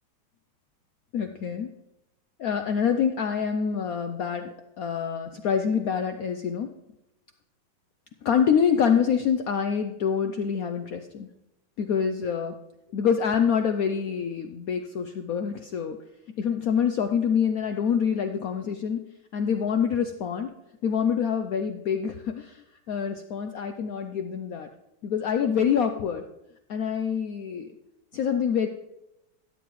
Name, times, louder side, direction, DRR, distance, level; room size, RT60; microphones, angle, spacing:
voice 1, 1.1-1.7 2.4-4.5 4.8-6.7 8.2-11.3 11.8-12.6 12.9-16.0 16.4-19.1 19.3-20.5 20.8-24.7 25.0-26.2 26.7-27.8 28.1-28.7, left 7 dB, 80° left, 7 dB, 0.7 m, -26 dB
13.0 x 9.2 x 3.1 m, 0.91 s
omnidirectional pair, 2.2 m